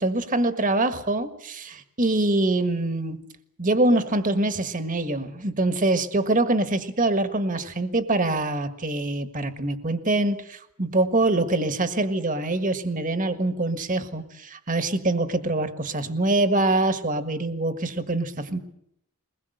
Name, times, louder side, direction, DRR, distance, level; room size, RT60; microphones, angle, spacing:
voice 1, 0.0-3.2 3.6-18.6, right 2 dB, 40° right, 10 dB, 1.6 m, -24 dB
22.5 x 21.0 x 8.0 m, 0.73 s
head